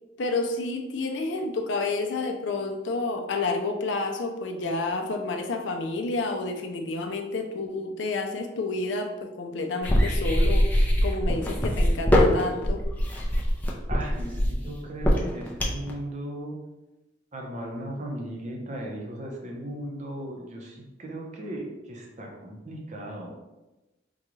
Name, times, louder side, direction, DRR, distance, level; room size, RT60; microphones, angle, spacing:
voice 1, 0.2-12.8, left 3 dB, 75° left, 4 dB, 0.4 m, -30 dB
sound 1, 9.8-15.9, equal, 10° left, 0.5 m, -22 dB
voice 2, 13.9-16.6 17.3-23.3, right 1 dB, 40° right, 0 dB, 0.7 m, -36 dB
3.7 x 2.3 x 3.0 m, 1.0 s
head